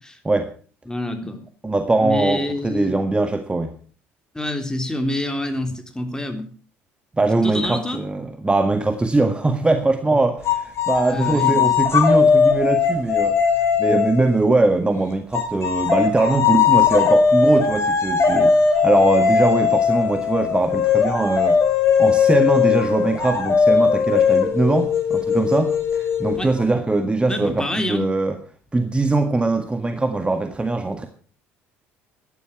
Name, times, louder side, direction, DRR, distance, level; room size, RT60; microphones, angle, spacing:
voice 1, 0.9-1.4 2.0-3.0 4.3-6.5 7.4-8.0 11.0-11.6 26.3-26.5 27.3-28.0, left 1 dB, 10° left, 6 dB, 3.6 m, -27 dB
voice 2, 1.6-3.7 7.1-13.4 13.8-18.6 18.8-21.6 22.0-28.4 28.7-31.1, right 2 dB, 15° right, 7 dB, 1.7 m, -21 dB
sound 1, 10.4-14.4 15.3-26.6, left 6 dB, 45° left, 4.3 m, -19 dB
14.0 x 11.0 x 6.1 m, 0.40 s
hypercardioid pair, 60°, 6 cm